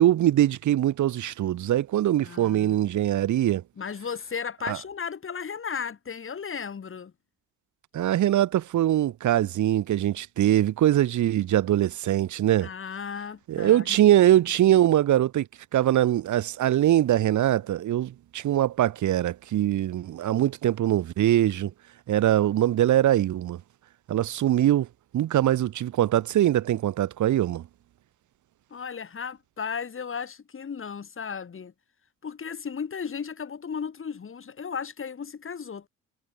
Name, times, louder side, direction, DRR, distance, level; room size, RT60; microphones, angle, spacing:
voice 1, 0.0-3.6 4.7-4.8 7.9-12.7 13.5-15.5 15.7-21.7 22.1-23.6 24.1-24.9 25.1-27.7, right 12 dB, 75° right, 3.2 m, -22 dB
voice 2, 2.2-2.9 3.8-7.1 12.6-13.9 14.2-14.7 28.7-31.7 32.2-35.9, left 6 dB, 45° left, 7.9 m, -35 dB
cardioid pair, 90°, 30 cm